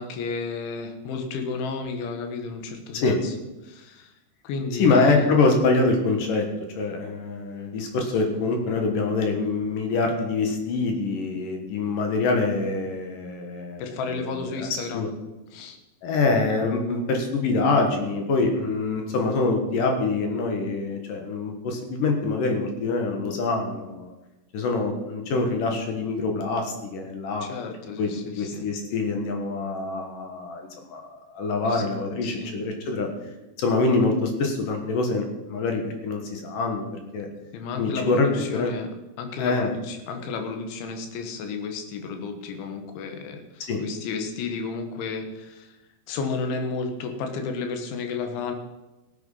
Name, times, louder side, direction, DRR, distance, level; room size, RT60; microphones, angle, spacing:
voice 1, 0.0-3.3 3.6-4.1 4.4-5.3 13.8-15.1 15.5-15.8 27.4-28.7 31.7-31.8 32.2-32.6 37.5-38.9 39.2-45.8 46.1-48.5, left 4 dB, 85° left, 5 dB, 3.9 m, -32 dB
voice 2, 4.8-6.5 6.8-13.8 14.2-15.1 16.0-24.1 24.5-27.5 28.0-28.1 28.4-33.1 33.6-37.3 37.8-38.7 39.4-39.7 43.7-43.8, left 3 dB, 60° left, 3 dB, 2.6 m, -25 dB
16.0 x 9.3 x 5.6 m, 1.0 s
omnidirectional pair, 5.2 m